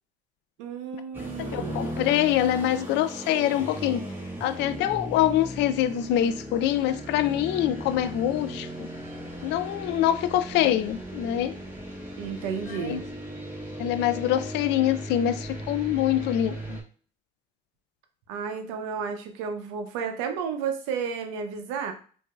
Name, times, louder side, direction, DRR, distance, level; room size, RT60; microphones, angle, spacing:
voice 1, 0.6-2.0 12.2-13.0 18.3-21.9, right 6 dB, 90° right, 0.7 m, -32 dB
sound 1, 1.1-16.8, right 1 dB, 10° right, 1.4 m, -37 dB
voice 2, 1.4-4.0 4.4-8.9 9.4-11.6 12.7-13.0 13.8-16.8, left 12 dB, 70° left, 0.4 m, -25 dB
4.7 x 2.7 x 2.2 m
supercardioid pair, 85°, 18 cm